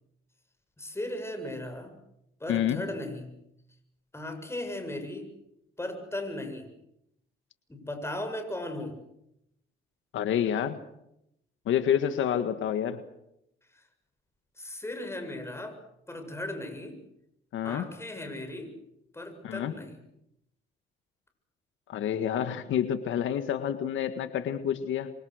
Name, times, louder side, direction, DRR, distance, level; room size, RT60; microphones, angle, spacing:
voice 1, 0.8-1.9 2.4-3.4 4.1-5.3 5.8-6.7 7.7-9.0 13.7-13.9 14.6-15.8 16.1-17.0 17.6-18.7 19.1-20.0, left 1 dB, 15° left, 5 dB, 7.2 m, -37 dB
voice 2, 2.5-2.8 10.1-10.8 11.7-13.0 17.5-17.8 19.4-19.7 21.9-25.1, left 9 dB, 80° left, 10 dB, 1.7 m, -28 dB
27.5 x 24.5 x 6.5 m, 0.80 s
cardioid pair, 90°, 20 cm